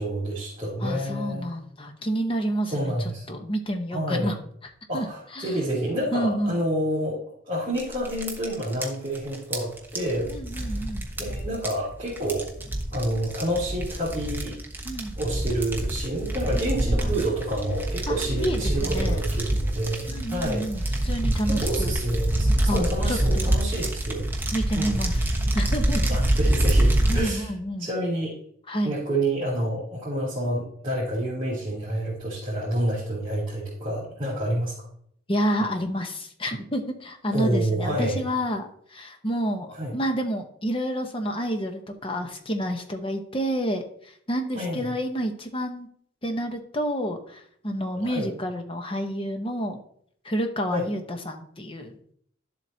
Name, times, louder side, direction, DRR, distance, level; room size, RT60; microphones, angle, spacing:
voice 1, 0.0-1.5 2.6-3.3 3.9-4.3 4.9-12.5 12.9-14.6 15.2-21.0 21.4-24.2 24.7-25.0 26.1-27.5 27.8-28.4 28.8-34.8 37.3-38.2 39.7-39.9 44.5-44.9 48.0-48.3 50.7-50.9, right 1 dB, 25° right, -9 dB, 2.9 m, -29 dB
voice 2, 0.8-2.9 3.3-4.3 4.9-5.1 5.3-5.6 6.1-6.6 10.3-11.1 14.8-15.2 16.8-17.1 18.1-19.2 20.1-21.9 22.7-23.5 24.5-25.2 25.5-26.2 27.1-27.9 28.7-28.9 35.3-45.9 46.2-49.8 50.2-51.9, equal, 25° left, 5 dB, 0.9 m, -29 dB
sound 1, 7.8-27.3, right 1 dB, 10° right, 1.1 m, -26 dB
11.5 x 7.5 x 2.8 m, 0.66 s
head